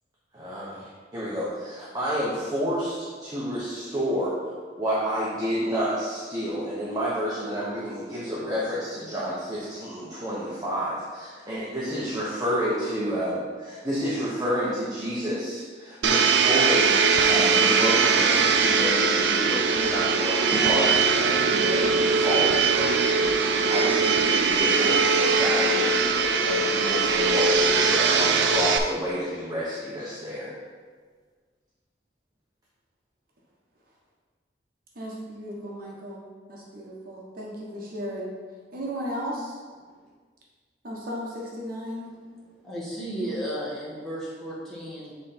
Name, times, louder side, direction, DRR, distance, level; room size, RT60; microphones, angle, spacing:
voice 1, 0.3-0.8 1.1-4.3 4.8-16.9 17.3-25.9 26.5-30.5, equal, 20° right, -8 dB, 1.1 m, -30 dB
Domestic sounds home sounds, 16.0-28.8, right 5 dB, 70° right, 0.5 m, -21 dB
sound 1, 20.5-27.7, left 1 dB, 20° left, 0.5 m, -38 dB
voice 2, 34.9-36.2 36.5-38.3 38.7-39.6 40.8-42.1, equal, 55° right, -3 dB, 1.1 m, -35 dB
voice 3, 42.2-45.1, equal, 5° left, -9 dB, 1.7 m, -35 dB
7.5 x 3.8 x 4.4 m, 1.6 s
head